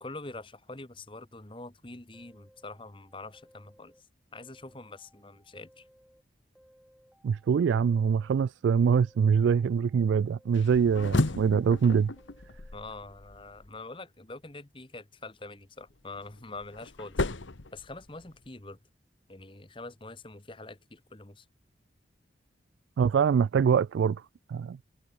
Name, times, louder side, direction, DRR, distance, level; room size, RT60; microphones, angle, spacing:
voice 1, 0.0-3.9 4.3-5.9 12.7-17.2 17.7-18.8 19.3-21.4, left 2 dB, 25° left, 1.4 m, -44 dB
sound 1, 2.1-4.0 4.3-6.2 6.5-8.4 8.8-10.6 11.0-12.8, equal, ahead, 7.4 m, -62 dB
voice 2, 7.2-12.1 23.0-24.2 24.5-24.8, right 6 dB, 75° right, 0.3 m, -24 dB
sound 2, 10.5-13.7 15.9-18.5, left 2 dB, 85° left, 1.3 m, -34 dB
head